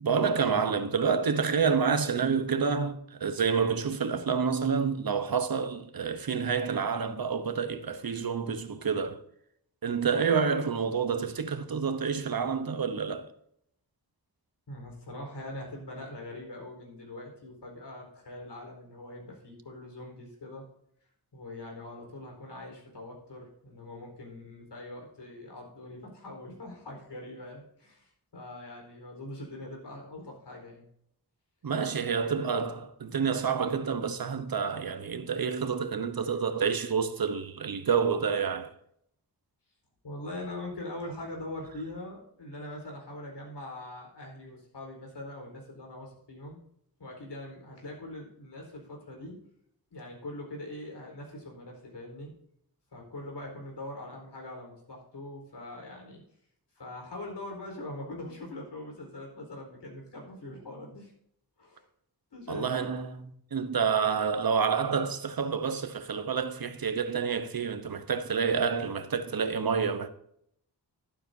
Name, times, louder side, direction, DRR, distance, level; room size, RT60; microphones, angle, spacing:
voice 1, 0.0-9.2 9.8-13.3 31.6-38.7 62.5-70.1, right 6 dB, 60° right, 1.0 m, -28 dB
voice 2, 14.7-20.7 21.3-30.9 32.1-32.5 40.0-46.6 47.0-49.4 49.9-52.3 52.9-56.2 56.7-61.1 61.6-61.8 62.3-62.9, left 1 dB, 85° left, 4.5 m, -42 dB
12.0 x 12.0 x 2.8 m
wide cardioid pair, 115°, 40 cm